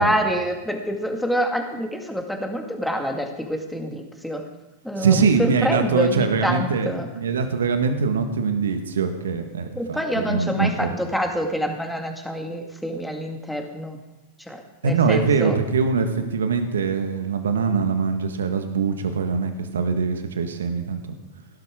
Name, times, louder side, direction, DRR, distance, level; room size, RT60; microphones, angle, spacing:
voice 1, 0.0-4.5 4.8-7.1 9.8-14.0 14.5-15.5, equal, ahead, 3 dB, 2.0 m, -26 dB
voice 2, 5.0-10.9 14.8-21.0, right 5 dB, 75° right, 7 dB, 1.5 m, -23 dB
17.0 x 12.0 x 3.7 m, 1.1 s
figure-of-eight pair, 90°, 0 cm